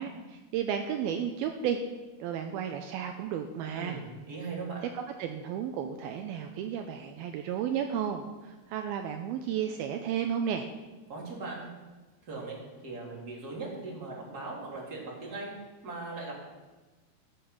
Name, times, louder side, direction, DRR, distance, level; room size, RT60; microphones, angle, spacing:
voice 1, 0.0-1.8 2.2-4.0 4.8-10.7, right 8 dB, 85° right, 5 dB, 2.2 m, -33 dB
voice 2, 3.8-4.8 11.1-11.7 12.2-12.6 12.8-15.5 15.8-16.4, right 3 dB, 25° right, -3 dB, 2.7 m, -39 dB
13.5 x 7.8 x 6.5 m, 1.2 s
omnidirectional pair, 5.0 m